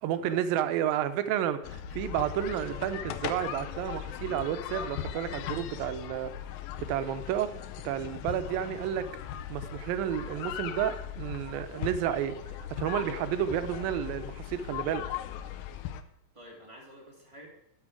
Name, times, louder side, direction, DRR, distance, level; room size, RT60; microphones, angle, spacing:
voice 1, 0.0-6.3 6.9-7.5 7.8-9.0 9.5-12.4 12.8-15.0, right 10 dB, 90° right, 11 dB, 2.5 m, -31 dB
sound 1, 1.6-16.0, left 10 dB, 80° left, 2.3 m, -38 dB
voice 2, 8.6-8.9 16.3-17.5, equal, 10° right, -3 dB, 1.7 m, -49 dB
12.5 x 6.6 x 4.8 m, 0.80 s
omnidirectional pair, 4.1 m